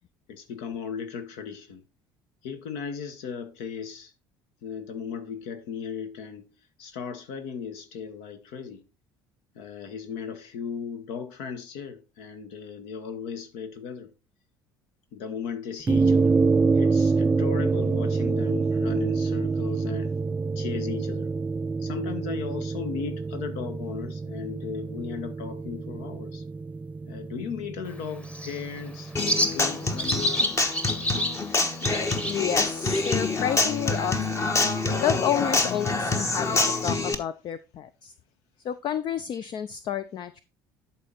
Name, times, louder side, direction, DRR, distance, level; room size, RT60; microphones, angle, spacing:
voice 1, 0.3-1.8 2.4-4.1 4.6-6.5 6.8-8.8 9.5-14.1 15.1-16.3 16.7-20.2 20.6-21.3 21.8-26.4 27.1-29.1 29.5-30.6, left 7 dB, 65° left, 1.3 m, -36 dB
sound 1, 15.9-30.4, right 4 dB, 15° right, 0.4 m, -27 dB
Bird, 27.9-36.8, equal, 10° left, 1.2 m, -33 dB
Human voice / Acoustic guitar, 29.2-37.1, left 3 dB, 25° left, 1.2 m, -26 dB
voice 2, 32.2-34.6 35.0-36.5 36.8-38.1 38.6-40.4, left 9 dB, 45° left, 0.5 m, -30 dB
11.0 x 4.3 x 4.0 m
hypercardioid pair, 60°, 11 cm